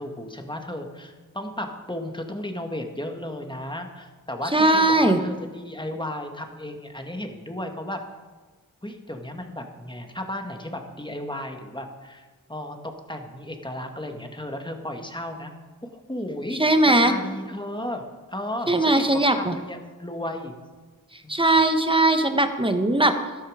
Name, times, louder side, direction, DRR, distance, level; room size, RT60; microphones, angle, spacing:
voice 1, 0.0-8.0 8.8-15.5 15.8-16.6 16.9-18.0 18.3-20.5 21.2-21.4, left 1 dB, 15° left, 4 dB, 1.7 m, -34 dB
voice 2, 4.5-5.2 16.6-17.1 18.7-19.5 21.3-23.2, right 2 dB, 15° right, 7 dB, 1.3 m, -19 dB
13.0 x 12.0 x 5.0 m, 1.3 s
wide cardioid pair, 55°, 33 cm